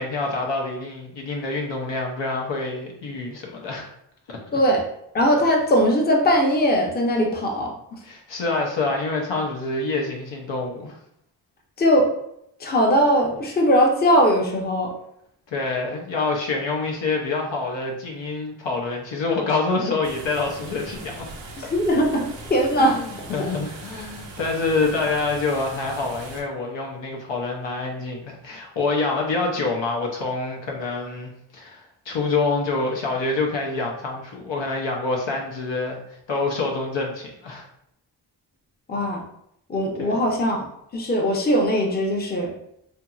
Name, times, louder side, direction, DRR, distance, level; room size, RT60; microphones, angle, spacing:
voice 1, 0.0-3.9 4.3-4.6 8.0-11.0 15.5-21.3 22.8-37.6 40.0-40.2, left 3 dB, 75° left, 0 dB, 0.8 m, -26 dB
voice 2, 4.5-4.8 5.1-7.8 11.8-12.1 12.6-14.9 21.6-23.5 38.9-39.2 39.7-40.7 40.9-42.5, equal, 20° left, 0 dB, 0.6 m, -20 dB
sound 1, 20.0-26.4, right 2 dB, 85° right, 0.6 m, -40 dB
2.8 x 2.6 x 2.3 m, 0.74 s
cardioid pair, 60°, 44 cm